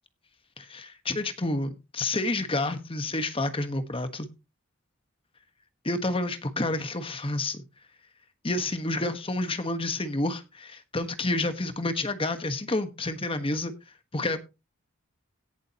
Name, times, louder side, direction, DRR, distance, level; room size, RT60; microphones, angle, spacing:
voice 1, 0.6-4.3 5.8-7.6 8.4-13.7 14.1-14.4, left 2 dB, 25° left, 1.3 m, -29 dB
17.5 x 7.4 x 2.9 m
head